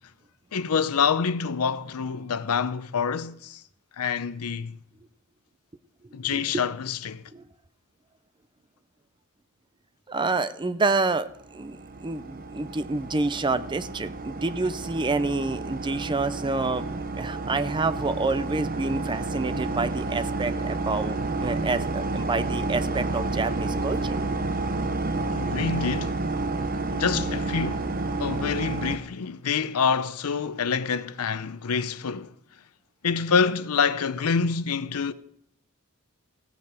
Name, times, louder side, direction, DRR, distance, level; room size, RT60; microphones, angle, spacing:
voice 1, 0.5-3.6 4.0-4.8 6.1-7.2 25.3-26.2 26.9-27.9 28.2-32.3 33.0-35.1, left 6 dB, 85° left, 0.6 m, -26 dB
voice 2, 6.1-6.6 7.3-7.5 10.1-16.9 17.2-24.2, right 3 dB, 20° right, 0.5 m, -28 dB
sound 1, 11.4-29.0, right 3 dB, 40° right, 0.9 m, -30 dB
15.5 x 8.3 x 5.0 m
head